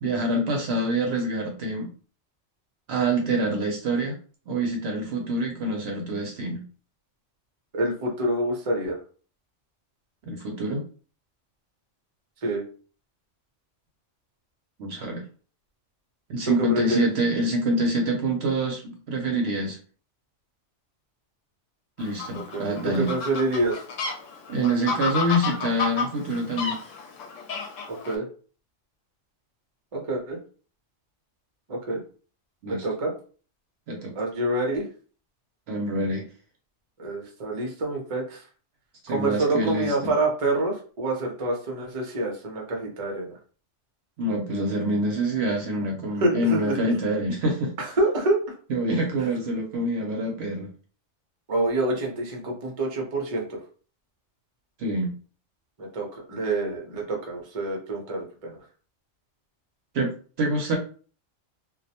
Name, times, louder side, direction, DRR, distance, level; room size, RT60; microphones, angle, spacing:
voice 1, 0.0-1.9 2.9-4.2 4.5-6.6 10.2-10.8 14.8-15.2 16.3-19.8 22.0-23.1 24.5-26.8 32.6-32.9 33.9-34.1 35.7-36.3 39.0-40.1 44.2-47.7 48.7-50.7 54.8-55.1 59.9-60.8, right 1 dB, 65° right, 2 dB, 0.8 m, -26 dB
voice 2, 7.7-9.0 12.4-12.6 16.4-17.1 22.3-23.8 27.9-28.2 29.9-30.4 31.7-32.0 32.7-33.1 34.1-34.8 37.0-38.4 39.1-43.4 46.2-46.7 47.8-48.4 49.2-49.3 51.5-53.6 55.8-58.6, right 2 dB, 35° right, -1 dB, 0.6 m, -27 dB
Fowl, 22.0-28.1, left 4 dB, 90° left, 0.9 m, -31 dB
2.3 x 2.0 x 2.7 m, 0.39 s
omnidirectional pair, 1.2 m